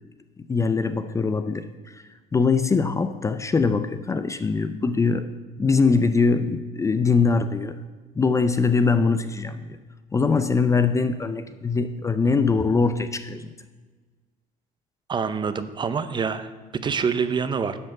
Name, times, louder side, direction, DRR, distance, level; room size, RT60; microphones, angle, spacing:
voice 1, 0.5-2.0 2.3-5.3 5.6-7.8 8.2-9.8 10.1-13.5, left 4 dB, 20° left, 10 dB, 0.5 m, -22 dB
voice 2, 15.1-17.8, right 6 dB, 25° right, 12 dB, 0.6 m, -26 dB
11.0 x 5.0 x 7.6 m, 1.3 s
cardioid pair, 120°, 17 cm